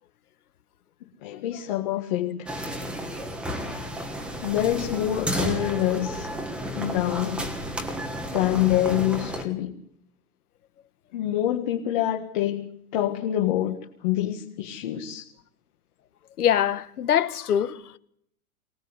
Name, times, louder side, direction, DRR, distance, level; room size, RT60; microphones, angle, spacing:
voice 1, 1.2-2.5 4.4-6.3 6.7-7.5 8.3-9.7 11.1-12.7 12.9-15.3, left 13 dB, 30° left, 1.8 m, -26 dB
sound 1, 2.5-9.4, equal, ahead, 1.4 m, -32 dB
voice 2, 16.4-18.0, left 10 dB, 80° left, 1.8 m, -23 dB
23.5 x 19.5 x 8.2 m
supercardioid pair, 175°, 44 cm